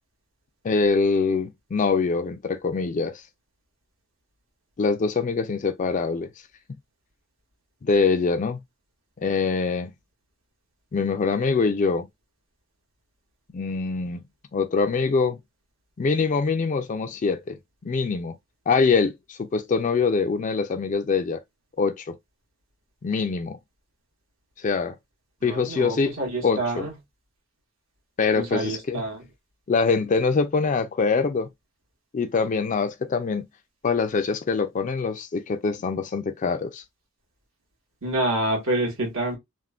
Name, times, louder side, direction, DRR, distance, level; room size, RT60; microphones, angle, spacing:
voice 1, 0.6-3.2 4.8-6.3 7.8-8.6 9.2-9.9 10.9-12.1 13.5-14.2 14.5-15.4 16.0-18.3 18.7-21.4 21.8-22.2 23.0-23.6 24.6-24.9 25.4-26.1 26.4-26.8 28.2-29.0 29.7-31.5 32.1-33.5 33.8-36.8, left 4 dB, 40° left, 0.4 m, -24 dB
voice 2, 25.4-26.9 28.4-29.2 38.0-39.4, right 1 dB, 80° right, 1.4 m, -27 dB
3.5 x 2.1 x 2.4 m
head